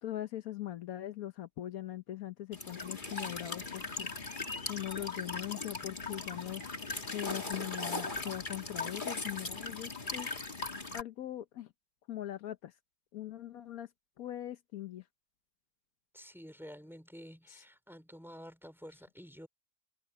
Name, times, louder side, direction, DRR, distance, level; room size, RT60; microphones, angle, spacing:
voice 1, 0.0-4.1 4.7-6.6 7.1-10.3 10.9-11.7 12.1-12.7 13.1-13.9 14.2-15.0, left 13 dB, 75° left, 1.3 m, -41 dB
Walk footsteps / Chirp tweet / Stream, 2.5-11.0, left 3 dB, 35° left, 2.3 m, -39 dB
voice 2, 16.1-19.5, equal, ahead, 4.7 m, -50 dB
omnidirectional pair, 1.5 m